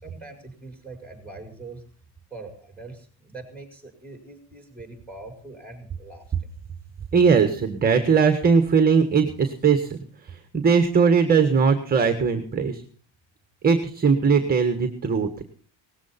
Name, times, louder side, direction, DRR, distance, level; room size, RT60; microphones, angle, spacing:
voice 1, 0.0-1.8 2.3-6.5, right 3 dB, 5° left, 4 dB, 5.2 m, -42 dB
voice 2, 7.1-12.8 13.6-15.4, right 5 dB, 20° right, 7 dB, 1.5 m, -20 dB
19.0 x 15.0 x 4.2 m, 0.43 s
cardioid pair, 150°, 48 cm